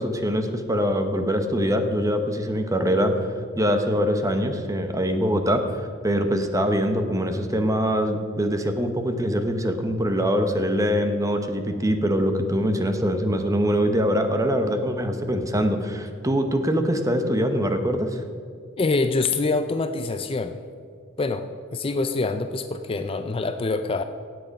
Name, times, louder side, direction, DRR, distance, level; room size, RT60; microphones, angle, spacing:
voice 1, 0.0-3.3 3.5-18.2, equal, 15° right, 7 dB, 0.9 m, -23 dB
voice 2, 18.8-20.6 21.2-24.0, left 3 dB, 25° left, 9 dB, 0.4 m, -25 dB
17.0 x 7.9 x 5.3 m, 2.3 s
head